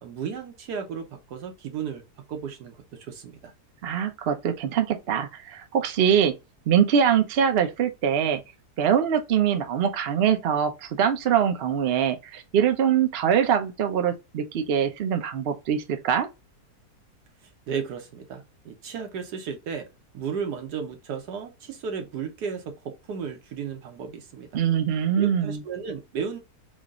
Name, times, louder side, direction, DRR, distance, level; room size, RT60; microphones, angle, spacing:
voice 1, 0.0-2.0 2.3-3.5 17.7-19.9 20.1-24.6 25.2-26.4, right 6 dB, 90° right, 1.4 m, -34 dB
voice 2, 3.8-6.3 6.7-8.4 8.8-16.3 24.5-25.6, right 8 dB, 60° right, 0.6 m, -23 dB
3.6 x 2.4 x 3.6 m
omnidirectional pair, 1.7 m